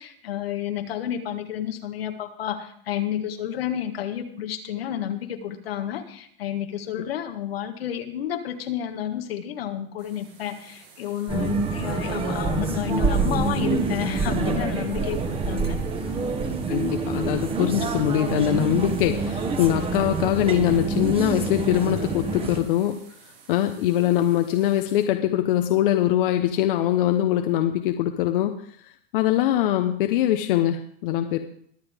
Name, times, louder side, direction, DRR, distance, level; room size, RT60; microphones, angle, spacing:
voice 1, 0.0-15.8, left 10 dB, 85° left, 6 dB, 1.7 m, -30 dB
sound 1, 10.0-25.0, right 6 dB, 90° right, 7.0 m, -52 dB
sound 2, 11.3-22.6, right 4 dB, 20° right, 1.3 m, -26 dB
voice 2, 16.7-23.0 23.5-28.5 28.8-31.4, left 12 dB, 65° left, 6 dB, 1.0 m, -22 dB
22.5 x 7.9 x 3.6 m, 0.64 s
supercardioid pair, 135°, 29 cm